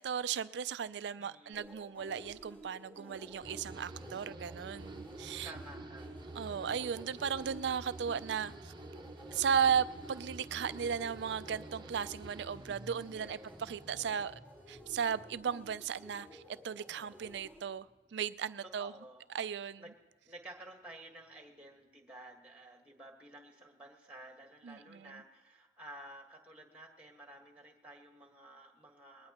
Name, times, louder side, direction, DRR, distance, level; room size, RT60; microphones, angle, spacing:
voice 1, 0.0-5.5 6.4-8.7 9.3-14.4 14.7-17.9 18.1-18.9 19.3-19.8 24.6-25.2, right 7 dB, 65° right, 0.4 m, -36 dB
voice 2, 1.2-1.7 5.4-6.6 13.1-13.6 16.9-17.2 18.6-19.2 19.8-19.9 20.2-29.3, right 1 dB, 5° right, 1.5 m, -53 dB
sound 1, 1.5-17.6, equal, 10° left, 3.6 m, -53 dB
sound 2, 3.4-16.7 17.0-17.7, right 2 dB, 25° right, 0.8 m, -50 dB
21.0 x 19.0 x 3.0 m
head